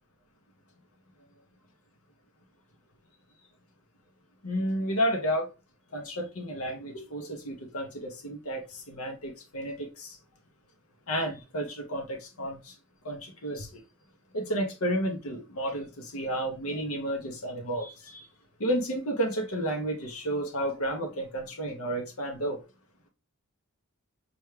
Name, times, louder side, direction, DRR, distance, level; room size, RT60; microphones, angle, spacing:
voice 1, 4.4-5.5 5.9-10.2 11.1-12.7 13.0-13.8 14.3-18.3 18.6-22.6, right 1 dB, 70° left, 0.8 m, -32 dB
6.0 x 2.2 x 3.2 m
head